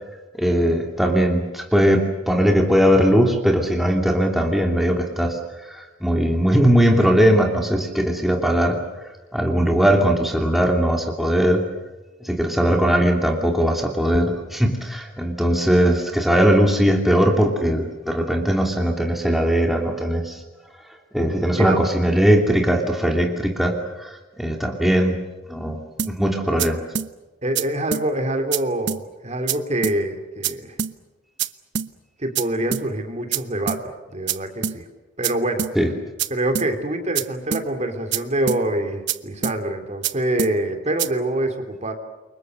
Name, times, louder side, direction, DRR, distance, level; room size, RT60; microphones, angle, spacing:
voice 1, 0.4-5.4 5.7-8.8 9.3-11.6 12.2-20.4 21.1-24.1 24.4-25.2 25.5-25.8 26.1-26.8 35.8-35.9, equal, ahead, 2 dB, 2.7 m, -19 dB
sound 1, 26.0-26.1 26.6-26.7 27.0-27.1 27.6-27.7 27.9-28.1 28.5-28.6 28.9-29.0 29.5-29.6 29.8-30.0 30.4-30.5 30.8-30.9 31.4-31.5 31.8-31.9 32.4-32.5 32.7-32.9 33.3-33.4 33.7-33.8 34.3-34.4 34.6-34.8 35.2-35.3 35.6-35.7 36.2-36.3 36.6-36.7 37.2-37.3 37.5-37.7 38.1-38.2 38.5-38.6 39.1-39.2 39.4-39.6 40.0-40.1 40.4-40.5 41.0-41.1, right 8 dB, 65° right, 1.1 m, -25 dB
voice 2, 27.4-30.8 32.2-34.9 35.2-35.7 36.3-41.9, right 1 dB, 35° right, 6 dB, 3.4 m, -25 dB
29.0 x 24.5 x 6.6 m, 1.2 s
head